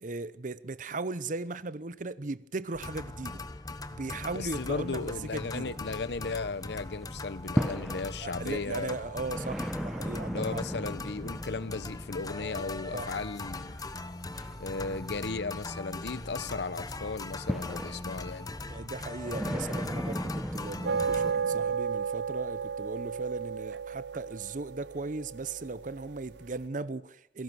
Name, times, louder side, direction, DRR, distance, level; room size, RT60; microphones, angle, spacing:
voice 1, 0.0-3.4 3.9-5.8 8.2-10.6 12.9-13.1 18.7-27.4, right 3 dB, 45° right, 0.8 m, -37 dB
sound 1, 2.7-21.3, left 2 dB, 20° left, 0.9 m, -40 dB
voice 2, 4.3-9.0 10.3-13.8 14.6-18.5, left 4 dB, 70° left, 0.8 m, -36 dB
sound 2, 4.4-6.5 6.9-21.8, equal, ahead, 1.3 m, -38 dB
sound 3, 20.8-26.4, right 6 dB, 85° right, 0.7 m, -33 dB
28.0 x 17.5 x 6.2 m
head